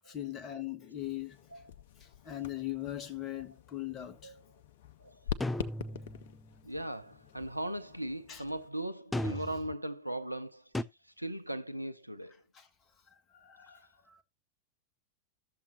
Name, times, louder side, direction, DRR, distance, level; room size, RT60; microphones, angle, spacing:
voice 1, 0.1-1.4 2.2-4.3 8.3-8.4 12.5-12.7 13.3-14.2, left 13 dB, 30° left, 1.5 m, -40 dB
sound 1, 1.0-8.7, left 10 dB, 55° left, 0.7 m, -45 dB
sound 2, 5.4-6.4 9.1-9.7 10.7-10.8, left 1 dB, 5° left, 0.5 m, -35 dB
voice 2, 6.6-10.6 11.0-12.3 13.6-13.8, right 1 dB, 90° right, 0.4 m, -38 dB
13.0 x 7.2 x 3.0 m
figure-of-eight pair, 90°, 0 cm